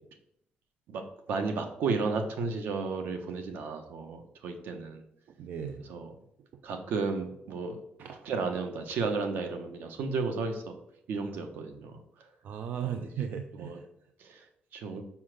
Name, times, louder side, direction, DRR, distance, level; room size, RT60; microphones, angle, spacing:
voice 1, 0.9-5.0 5.9-6.1 6.6-7.8 8.2-10.7 11.1-12.0 12.8-13.1 13.6-13.8 14.2-14.4 14.7-15.0, right 4 dB, 85° right, 6 dB, 1.3 m, -33 dB
voice 2, 5.4-5.8 8.0-8.3 12.4-13.8, right 8 dB, 70° right, 7 dB, 0.6 m, -36 dB
5.7 x 5.5 x 6.4 m, 0.75 s
cardioid pair, 135°, 3 cm